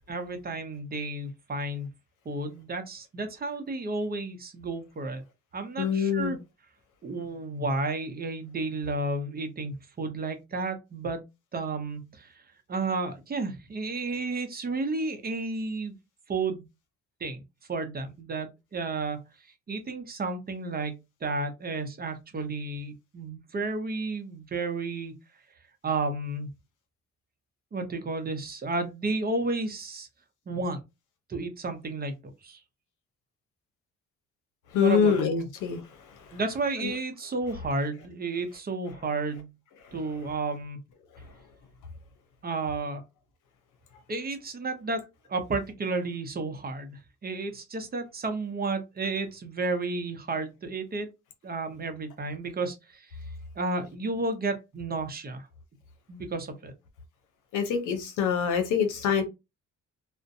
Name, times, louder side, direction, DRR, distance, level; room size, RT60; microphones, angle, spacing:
voice 1, 0.1-1.9 2.3-5.2 5.5-6.4 7.0-11.2 11.5-12.3 12.7-15.9 16.3-16.6 17.2-17.4 17.7-19.2 19.7-25.1 25.8-26.5 27.7-30.1 30.5-30.8 31.3-32.1 32.4-32.6 34.8-35.1 36.3-39.5 39.9-40.8 42.4-43.0 44.1-45.0 45.3-51.1 51.4-53.2 53.6-55.5 56.1-56.7, right 3 dB, 30° right, 0.6 m, -32 dB
voice 2, 5.8-6.4 34.7-35.8 36.8-36.9 57.5-59.2, left 7 dB, 85° left, 0.7 m, -25 dB
2.5 x 2.1 x 2.6 m
cardioid pair, 90°, 30 cm